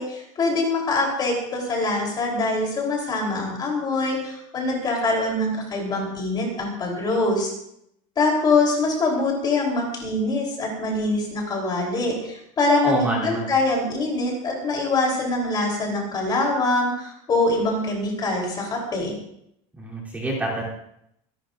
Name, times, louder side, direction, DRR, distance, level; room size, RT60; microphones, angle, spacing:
voice 1, 0.0-7.5 8.2-19.2, left 2 dB, 25° left, -1 dB, 3.6 m, -24 dB
voice 2, 12.8-13.5 19.8-20.6, right 1 dB, 10° right, -5 dB, 3.2 m, -26 dB
25.0 x 12.0 x 2.6 m, 0.76 s
cardioid pair, 165°, 17 cm